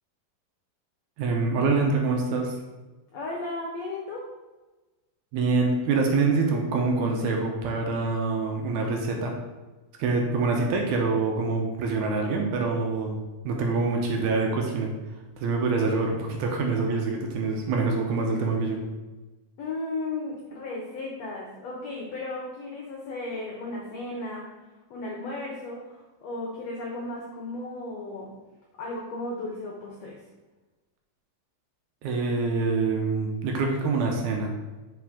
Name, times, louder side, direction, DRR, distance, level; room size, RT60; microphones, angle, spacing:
voice 1, 1.2-2.5 5.3-9.3 10.0-13.2 13.4-14.9 15.4-18.8 32.0-34.5, right 3 dB, 75° right, 1 dB, 1.9 m, -25 dB
voice 2, 3.1-4.3 19.6-24.5 24.9-28.3 28.8-30.2, left 2 dB, 75° left, -3 dB, 1.5 m, -35 dB
5.8 x 4.9 x 3.6 m, 1.2 s
omnidirectional pair, 4.1 m